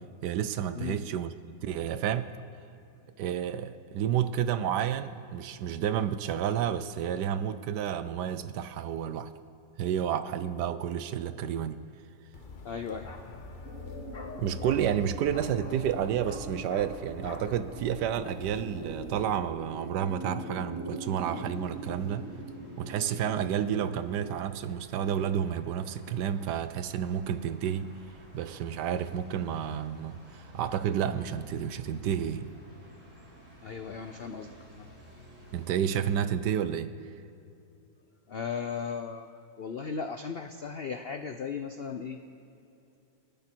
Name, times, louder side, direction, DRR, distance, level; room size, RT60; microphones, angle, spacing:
voice 1, 0.2-2.3 3.2-9.3 9.8-11.8 14.4-22.3 22.8-27.9 28.3-32.5 35.5-36.9, right 9 dB, 75° right, 13 dB, 1.2 m, -30 dB
Bark, 12.3-19.4, left 3 dB, 35° left, 1.0 m, -44 dB
voice 2, 12.6-13.2 33.6-34.9 38.3-39.3 39.6-42.2, left 6 dB, 75° left, 7 dB, 0.5 m, -36 dB
sound 1, 13.6-24.3, right 1 dB, 10° right, 3.1 m, -42 dB
sound 2, 21.0-36.2, equal, 55° right, 4.9 m, -51 dB
29.0 x 10.5 x 4.4 m, 2.8 s
omnidirectional pair, 1.9 m